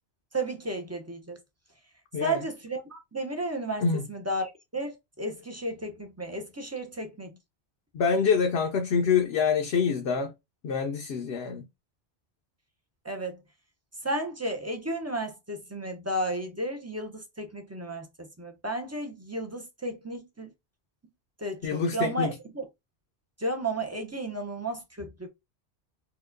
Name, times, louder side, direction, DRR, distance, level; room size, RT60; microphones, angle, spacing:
voice 1, 0.3-1.4 2.2-3.8 4.1-7.4 13.0-13.4 14.0-20.5 21.4-22.7 23.4-25.3, right 1 dB, 20° right, 0.5 m, -33 dB
voice 2, 7.9-10.3 10.6-11.7 21.6-22.3, left 5 dB, 70° left, 0.8 m, -26 dB
4.4 x 2.3 x 2.5 m
omnidirectional pair, 1.1 m